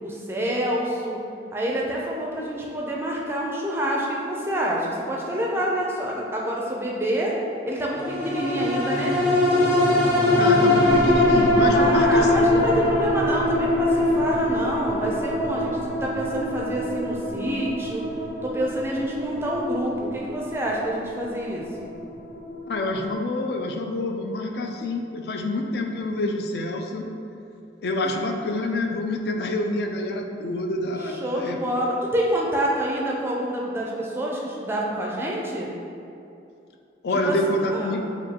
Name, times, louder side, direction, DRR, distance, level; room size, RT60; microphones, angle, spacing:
voice 1, 0.0-1.2 1.5-7.3 7.7-9.2 11.7-18.0 18.4-21.9 31.0-35.7 37.2-37.4 37.7-38.0, right 1 dB, 15° right, -3 dB, 0.4 m, -27 dB
sound 1, 8.0-22.7 23.1-23.2, left 1 dB, 15° left, 0.9 m, -23 dB
voice 2, 10.4-12.6 22.7-27.1 27.8-31.6 37.0-38.0, left 2 dB, 65° left, 4 dB, 0.3 m, -27 dB
4.9 x 2.6 x 2.8 m, 2.6 s
head